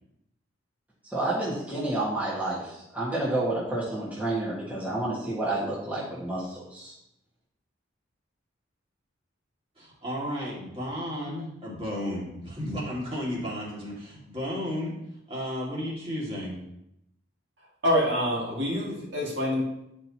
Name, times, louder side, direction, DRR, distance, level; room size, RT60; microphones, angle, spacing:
voice 1, 1.1-6.9, right 2 dB, 10° right, -8 dB, 1.5 m, -30 dB
voice 2, 9.8-14.9 15.3-16.6, equal, 25° right, -6 dB, 2.0 m, -33 dB
voice 3, 17.8-19.6, equal, 60° right, -5 dB, 1.9 m, -26 dB
10.0 x 4.4 x 2.8 m, 0.82 s
head